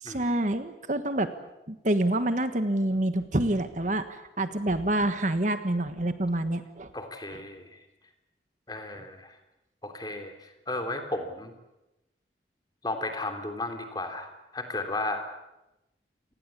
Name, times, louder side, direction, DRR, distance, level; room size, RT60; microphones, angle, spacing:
voice 1, 0.0-1.3 1.7-6.9, right 1 dB, 45° right, 9 dB, 1.4 m, -27 dB
voice 2, 6.9-7.8 8.7-9.4 9.8-11.5 12.8-15.2, left 2 dB, 25° left, 6 dB, 3.1 m, -34 dB
28.5 x 19.5 x 8.4 m, 0.95 s
head